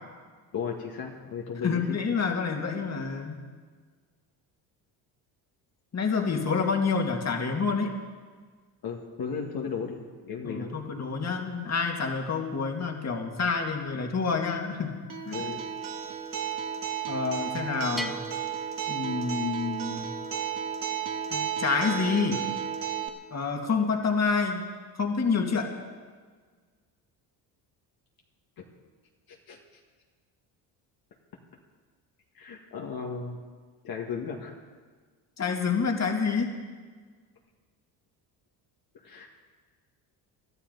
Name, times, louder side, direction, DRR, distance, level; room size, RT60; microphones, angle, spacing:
voice 1, 0.5-2.0 8.8-10.7 15.3-15.6 28.6-28.7 29.3-29.6 32.3-33.4 33.8-34.5 38.9-39.3, left 6 dB, 50° left, 0 dB, 2.0 m, -35 dB
voice 2, 1.6-3.4 5.9-7.9 10.4-15.3 17.1-18.2 18.9-20.1 21.3-22.4 23.3-24.7 24.9-25.7 35.4-36.5, left 5 dB, 35° left, 3 dB, 2.4 m, -28 dB
Acoustic guitar, 15.1-23.1, right 8 dB, 45° right, 2.2 m, -33 dB
Bell, 18.0-19.7, equal, ahead, 1.5 m, -40 dB
23.0 x 13.0 x 4.1 m, 1.5 s
supercardioid pair, 80°, 45 cm